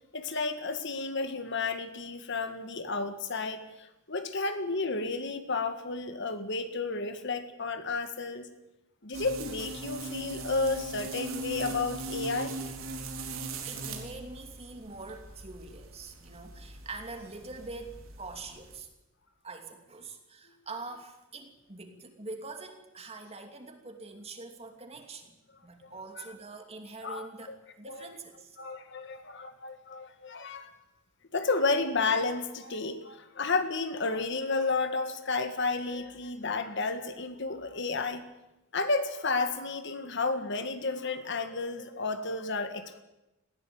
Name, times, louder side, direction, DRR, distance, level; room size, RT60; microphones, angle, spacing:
voice 1, 0.1-8.5 9.0-12.6 25.8-26.3 27.0-27.6 27.9-28.1 28.6-30.7 31.3-38.2 38.7-43.0, left 3 dB, 60° left, 9 dB, 1.9 m, -32 dB
sound 1, 9.1-18.8, right 2 dB, 90° right, 3.7 m, -40 dB
voice 2, 13.7-18.9 19.4-25.3 25.6-28.6, right 3 dB, 30° right, 5 dB, 2.9 m, -44 dB
20.5 x 16.0 x 8.8 m, 0.97 s
head